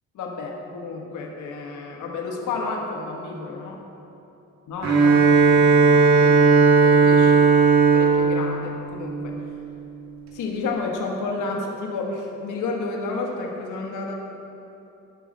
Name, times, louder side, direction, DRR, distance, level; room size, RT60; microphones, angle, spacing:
voice 1, 0.1-3.8 4.7-6.5 6.8-7.4 7.9-9.3 10.3-14.1, left 3 dB, 80° left, 0 dB, 1.6 m, -31 dB
Bowed string instrument, 4.8-9.6, right 4 dB, 65° right, 2.1 m, -17 dB
18.0 x 6.4 x 4.2 m, 2.9 s
cardioid pair, 90°, 30 cm